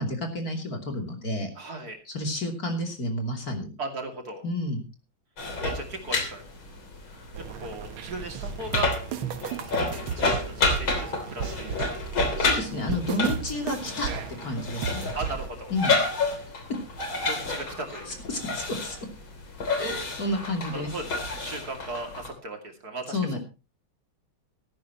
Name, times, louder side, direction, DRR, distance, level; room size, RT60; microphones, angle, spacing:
voice 1, 0.0-1.5 2.1-3.7 4.4-4.8 12.4-14.1 14.4-15.1 15.7-16.0 18.3-19.0 19.8-20.9 23.1-23.4, left 1 dB, 45° left, 3 dB, 3.3 m, -30 dB
voice 2, 1.6-2.0 3.8-4.4 5.6-6.4 7.4-9.0 9.6-12.0 15.1-15.7 17.3-18.2 20.7-23.4, right 3 dB, 50° right, 3 dB, 3.0 m, -37 dB
sound 1, 5.4-22.3, left 3 dB, 75° left, 4.1 m, -30 dB
sound 2, 7.3-15.5, right 7 dB, 90° right, 2.0 m, -34 dB
16.5 x 14.0 x 3.0 m, 0.30 s
omnidirectional pair, 2.2 m